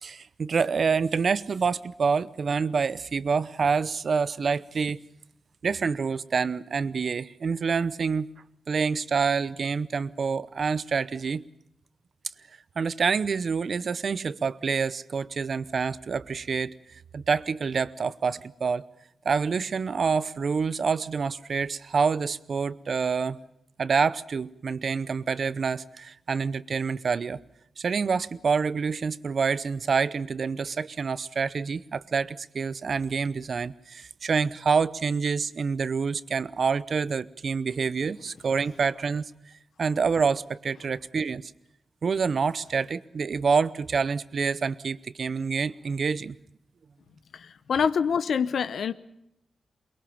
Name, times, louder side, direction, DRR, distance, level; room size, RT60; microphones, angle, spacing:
voice 1, 0.0-5.0 5.6-8.3 8.7-11.4 12.8-18.8 19.2-23.4 23.8-27.4 27.8-39.3 39.8-41.5 42.0-46.4, right 5 dB, 60° right, 0.8 m, -27 dB
voice 2, 47.3-48.9, left 6 dB, 80° left, 0.9 m, -26 dB
23.0 x 22.0 x 7.1 m
wide cardioid pair, 100°, 0 cm